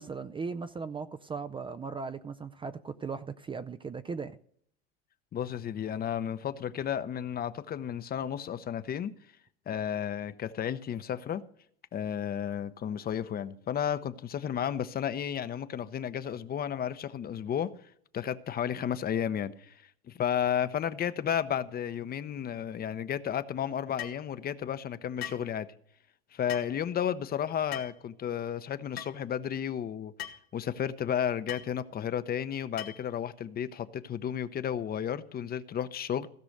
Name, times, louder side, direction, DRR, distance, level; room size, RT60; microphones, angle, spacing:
voice 1, 0.0-4.4, right 5 dB, 15° right, 11 dB, 0.5 m, -38 dB
voice 2, 5.3-9.1 9.7-11.4 11.9-17.7 18.1-25.7 26.3-30.1 30.5-36.3, left 9 dB, 30° left, 13 dB, 0.8 m, -33 dB
sound 1, 24.0-24.2 25.2-25.5 26.5-26.7 27.7-28.0 29.0-29.1 30.2-30.4 31.5-31.7 32.8-33.1, left 11 dB, 85° left, 1.3 m, -40 dB
16.0 x 6.1 x 6.5 m, 0.63 s
hypercardioid pair, 85°, 30 cm